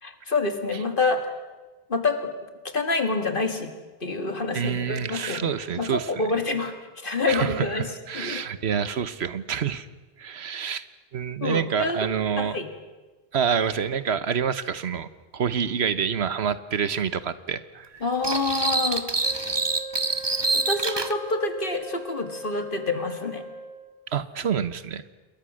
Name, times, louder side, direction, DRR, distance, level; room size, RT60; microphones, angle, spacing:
voice 1, 0.0-1.3 1.9-2.3 2.6-3.7 4.0-5.5 5.8-6.7 7.0-7.8 8.1-8.4 11.4-12.1 12.4-12.7 18.0-19.1 20.5-23.4, left 3 dB, 55° left, 7 dB, 2.3 m, -27 dB
voice 2, 4.5-6.4 7.3-9.9 10.2-10.8 11.1-12.6 13.3-15.1 15.3-18.0 24.1-25.0, right 7 dB, 85° right, 14 dB, 1.3 m, -27 dB
sound 1, 18.2-21.1, right 3 dB, 25° right, 1.1 m, -26 dB
Wind instrument woodwind instrument, 19.2-24.0, right 1 dB, 5° left, 5.0 m, -40 dB
28.0 x 21.5 x 6.4 m, 1.2 s
omnidirectional pair, 1.1 m